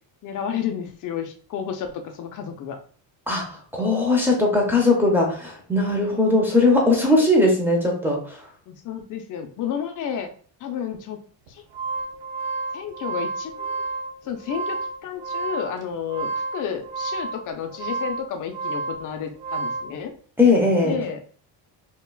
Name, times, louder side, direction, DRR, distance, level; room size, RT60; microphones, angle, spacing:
voice 1, 0.2-2.8 8.7-10.3 10.6-11.2 11.5-11.6 12.7-13.7 14.2-20.1 20.8-21.2, left 8 dB, 40° left, 5 dB, 0.6 m, -31 dB
voice 2, 3.3-8.4 20.4-21.0, left 2 dB, 5° right, -2 dB, 0.6 m, -19 dB
sound 1, 11.5-19.9, right 3 dB, 85° right, 1.0 m, -31 dB
5.5 x 2.3 x 2.3 m, 0.43 s
cardioid pair, 160°, 47 cm